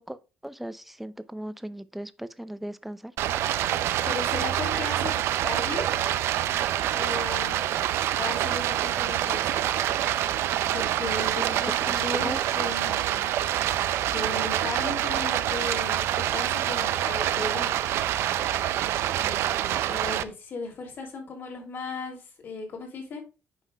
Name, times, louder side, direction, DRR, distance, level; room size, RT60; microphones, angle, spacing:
voice 1, 0.0-3.1 11.4-12.6, right 1 dB, 5° right, 0.5 m, -38 dB
Stream, 3.2-20.2, right 12 dB, 75° right, 0.5 m, -26 dB
voice 2, 4.0-5.2 5.4-5.9 6.9-7.6 8.2-9.6 10.7-13.3 14.1-17.8 19.1-23.2, left 3 dB, 55° left, 2.9 m, -36 dB
9.2 x 5.5 x 2.3 m
cardioid pair, 105°, 4 cm